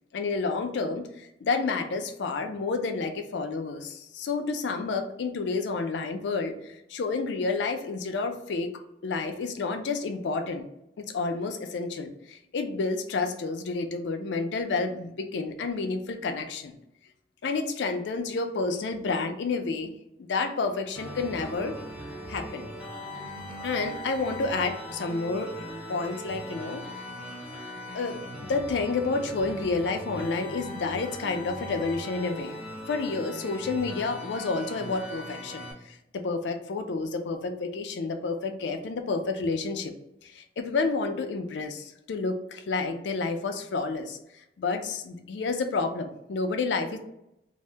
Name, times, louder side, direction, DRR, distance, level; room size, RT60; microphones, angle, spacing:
voice 1, 0.1-8.7 9.0-10.6 11.0-16.7 17.4-19.9 20.2-21.8 22.3-22.7 23.6-26.8 27.9-32.5 32.9-39.9 40.2-47.0, left 4 dB, 80° left, 6 dB, 0.4 m, -30 dB
sound 1, 20.9-35.7, equal, 10° right, 0.6 m, -39 dB
2.6 x 2.0 x 3.3 m, 0.82 s
head